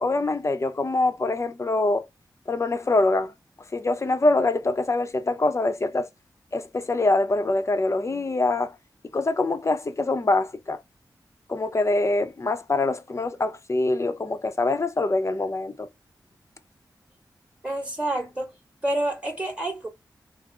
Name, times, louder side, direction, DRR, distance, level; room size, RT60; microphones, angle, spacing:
voice 1, 0.0-2.1 2.5-3.3 3.7-6.1 6.5-8.8 9.1-10.8 11.5-15.9, left 2 dB, 40° left, 0.6 m, -24 dB
voice 2, 17.6-18.6 18.8-19.9, right 1 dB, 15° right, 2.2 m, -28 dB
3.5 x 2.0 x 3.0 m
cardioid pair, 65°, 8 cm